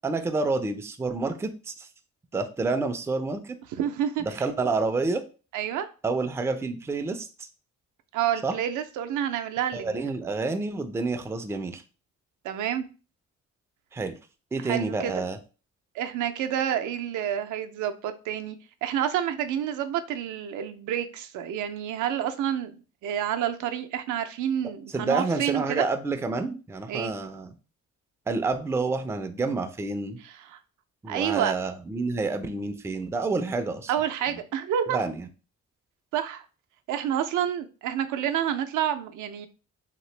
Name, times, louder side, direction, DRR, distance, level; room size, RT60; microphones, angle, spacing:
voice 1, 0.0-1.9 2.3-3.6 4.2-5.2 6.0-7.5 8.4-8.6 9.7-11.8 13.9-14.1 14.5-15.4 24.9-27.5 28.3-30.2 31.0-33.9 34.9-35.3, right 3 dB, 10° right, 8 dB, 0.3 m, -29 dB
voice 2, 3.7-4.2 5.5-5.9 8.1-9.9 12.4-12.8 14.6-15.2 15.9-22.7 23.0-25.9 26.9-27.1 30.2-30.6 31.1-31.5 33.9-35.0 36.1-36.4 36.9-39.5, right 10 dB, 80° right, 8 dB, 0.5 m, -28 dB
2.9 x 2.6 x 3.1 m, 0.34 s
cardioid pair, 90°, 30 cm